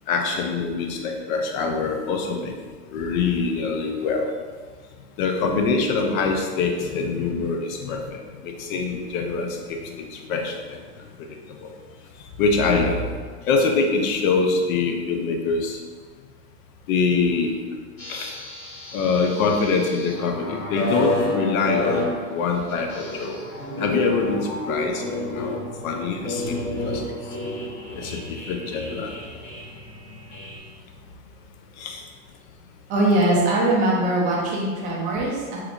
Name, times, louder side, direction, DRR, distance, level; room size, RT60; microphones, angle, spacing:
voice 1, 0.1-2.5 2.9-4.3 5.2-10.8 11.6-11.7 12.4-13.1 13.4-15.8 16.9-17.5 18.1-18.3 18.9-23.4 23.8-24.4 24.7-25.6 25.8-27.0 28.0-29.1 31.8-32.0, left 4 dB, 55° left, 3 dB, 0.6 m, -24 dB
sound 1, 18.0-30.6, left 1 dB, 40° left, 1.1 m, -31 dB
voice 2, 32.9-35.6, right 1 dB, 20° right, -4 dB, 0.3 m, -21 dB
3.4 x 2.9 x 2.4 m, 1.5 s
hypercardioid pair, 115°, 49 cm